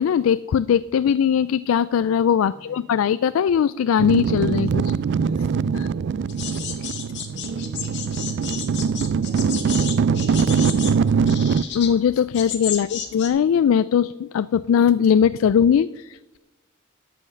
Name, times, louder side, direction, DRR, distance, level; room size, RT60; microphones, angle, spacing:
voice 1, 0.0-4.9 5.7-5.9 11.7-16.4, left 8 dB, 80° left, 16 dB, 0.3 m, -20 dB
voice 2, 2.4-3.0 5.9-6.6 7.2-9.4 9.7-11.1, right 1 dB, 40° right, -3 dB, 2.8 m, -46 dB
sound 1, 4.0-11.6, right 6 dB, 60° right, 0.3 m, -22 dB
sound 2, 6.3-13.3, left 8 dB, 60° left, 1.8 m, -33 dB
12.0 x 7.7 x 6.3 m, 1.1 s
head